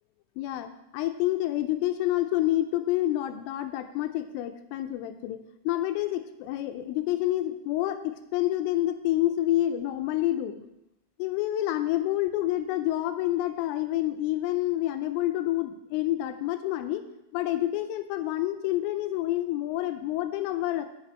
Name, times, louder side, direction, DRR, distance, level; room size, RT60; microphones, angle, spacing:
voice 1, 0.4-5.4 5.7-10.7 11.2-17.0 17.3-20.9, left 14 dB, 85° left, 9 dB, 3.0 m, -28 dB
8.1 x 6.6 x 4.3 m, 0.89 s
omnidirectional pair, 5.8 m